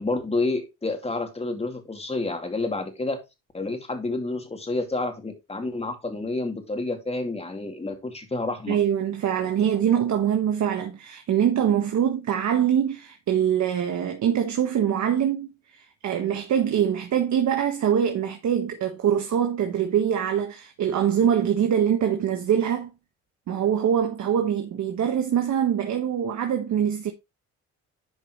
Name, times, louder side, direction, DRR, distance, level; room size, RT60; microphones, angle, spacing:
voice 1, 0.0-3.2 3.5-8.8 9.4-9.5, left 2 dB, 20° left, 2.5 m, -29 dB
voice 2, 8.7-22.9 23.5-27.1, right 9 dB, 65° right, 1.4 m, -24 dB
11.0 x 5.2 x 3.1 m
cardioid pair, 90°, 30 cm